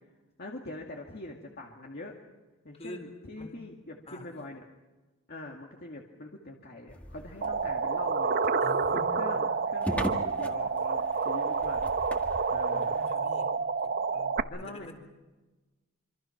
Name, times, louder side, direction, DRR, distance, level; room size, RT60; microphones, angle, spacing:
voice 1, 0.4-2.2 2.6-4.6 5.3-8.4 8.9-11.8 12.5-13.1 14.5-14.9, left 2 dB, 45° left, 0 dB, 2.2 m, -43 dB
sound 1, 6.9-13.2, equal, 5° left, 1.8 m, -40 dB
sound 2, 7.4-14.4, right 4 dB, 45° right, 0.9 m, -29 dB
voice 2, 8.6-9.3 12.5-13.5 13.8-14.9, left 1 dB, 30° left, 4 dB, 4.3 m, -46 dB
26.5 x 26.0 x 5.9 m, 1.2 s
head